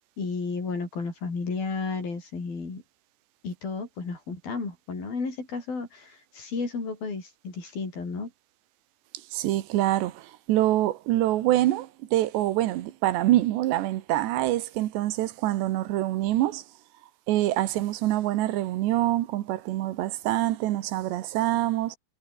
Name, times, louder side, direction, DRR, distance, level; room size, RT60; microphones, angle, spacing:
voice 1, 0.2-2.8 3.4-8.3, left 4 dB, 60° left, 9.0 m, -33 dB
voice 2, 9.3-16.6 17.3-22.0, right 15 dB, 90° right, 3.5 m, -25 dB
omnidirectional pair, 4.8 m